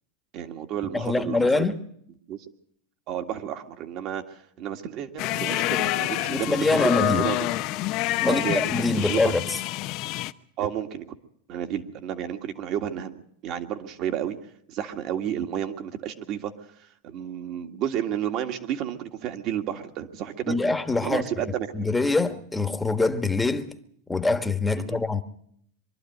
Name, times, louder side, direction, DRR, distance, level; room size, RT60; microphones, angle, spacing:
voice 1, 0.3-1.6 2.3-2.4 3.1-7.5 8.2-9.4 10.6-11.1 11.5-14.4 14.7-16.5 16.8-20.6 21.0-21.7 24.8-25.0, right 10 dB, 45° right, 2.0 m, -31 dB
voice 2, 0.9-1.8 6.3-7.3 8.2-9.6 20.5-21.2 21.7-23.7 24.1-25.2, left 3 dB, 10° left, 1.4 m, -24 dB
sound 1, 5.2-10.3, left 16 dB, 50° left, 0.7 m, -27 dB
24.0 x 12.0 x 9.4 m
supercardioid pair, 130°, 0 cm